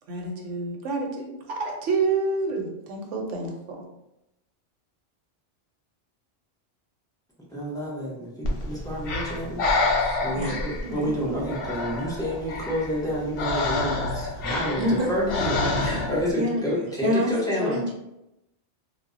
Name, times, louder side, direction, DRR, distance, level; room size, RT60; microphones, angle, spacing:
voice 1, 0.1-3.9, right 3 dB, 80° right, 1 dB, 0.9 m, -28 dB
voice 2, 7.5-9.6 10.2-17.8, equal, 5° left, -6 dB, 0.3 m, -29 dB
Breathing, 8.4-16.3, left 2 dB, 60° left, 0.7 m, -28 dB
voice 3, 10.0-11.4 14.8-15.1 16.4-16.6 17.0-17.9, left 1 dB, 60° right, -2 dB, 0.4 m, -28 dB
2.1 x 2.0 x 3.6 m, 0.88 s
omnidirectional pair, 1.3 m